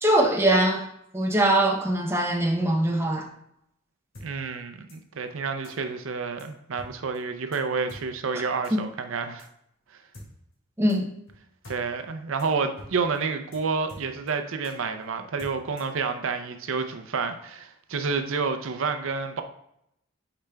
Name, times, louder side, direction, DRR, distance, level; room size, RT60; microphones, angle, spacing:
voice 1, 0.0-0.8 1.1-3.3 8.7-8.8 10.8-11.1, right 1 dB, 10° right, 0.6 m, -22 dB
sound 1, 4.1-4.3 4.9-5.0 5.6-5.7 6.4-6.5 6.8-6.9 7.1-7.2 7.5-7.6 7.9-8.0 8.6-8.7 9.4-9.5 10.1-10.3 10.9-11.0 11.3-11.4 11.6-11.8 12.0-12.1 12.4-12.5 12.8-12.9 13.1-13.2 13.5-13.6 13.9-14.3 14.6-14.7 15.4-16.0, left 1 dB, 65° left, 2.1 m, -44 dB
voice 2, 4.2-9.5 9.9-10.0 11.7-19.4, right 4 dB, 70° right, 0.5 m, -29 dB
8.7 x 4.9 x 2.2 m
head